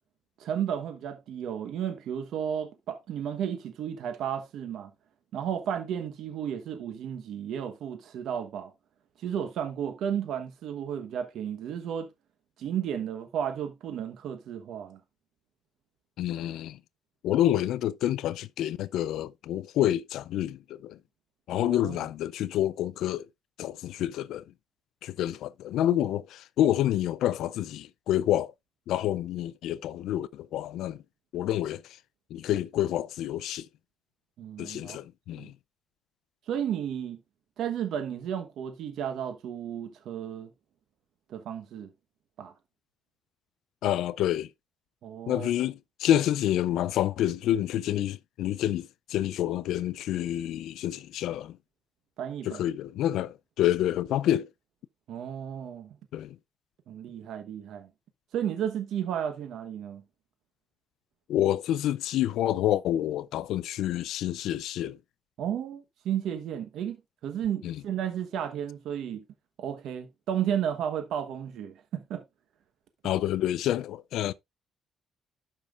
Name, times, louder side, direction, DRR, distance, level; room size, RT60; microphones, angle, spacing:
voice 1, 0.4-4.9 5.3-8.7 9.2-12.1 12.6-15.0 21.6-22.0 34.4-35.0 35.4-35.5 36.5-37.2 37.6-40.5 41.3-41.9 42.4-42.5 45.0-45.7 52.2-52.6 55.1-56.0 56.9-57.9 58.3-60.0 65.4-69.2 69.6-72.2, right 9 dB, 80° right, 1.1 m, -33 dB
voice 2, 16.2-16.8 17.2-21.0 21.5-23.3 23.6-24.4 25.0-28.5 28.9-31.0 31.3-32.0 32.3-33.7 34.6-35.5 43.8-44.5 45.3-51.6 52.4-54.5 56.1-56.4 61.3-65.0 67.6-67.8 73.0-74.3, left 12 dB, 85° left, 0.4 m, -28 dB
12.0 x 5.6 x 2.4 m
cardioid pair, 90°, 0 cm